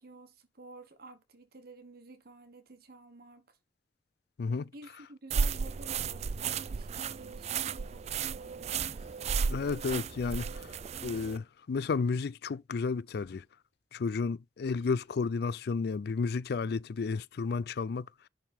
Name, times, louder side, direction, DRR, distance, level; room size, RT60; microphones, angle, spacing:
voice 1, 0.0-3.6 4.5-9.0, right 3 dB, 60° right, 1.1 m, -52 dB
sound 1, 5.3-11.4, right 6 dB, 40° right, 0.4 m, -34 dB
sound 2, 7.9-9.5 10.4-11.3 12.8-12.9 13.2-14.2 14.7-15.2, left 2 dB, 85° left, 1.7 m, -64 dB
voice 2, 9.5-10.7 11.0-13.4 13.9-18.1, left 4 dB, 60° left, 0.4 m, -32 dB
11.0 x 3.7 x 4.3 m
head